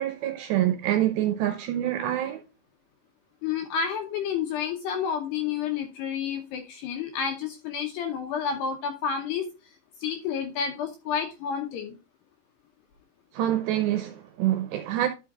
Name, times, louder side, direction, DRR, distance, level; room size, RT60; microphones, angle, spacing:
voice 1, 0.0-2.4 13.3-15.1, right 12 dB, 80° right, 2.5 m, -26 dB
voice 2, 3.4-9.5 10.0-12.0, left 7 dB, 75° left, 2.5 m, -30 dB
12.0 x 6.1 x 2.4 m
omnidirectional pair, 5.8 m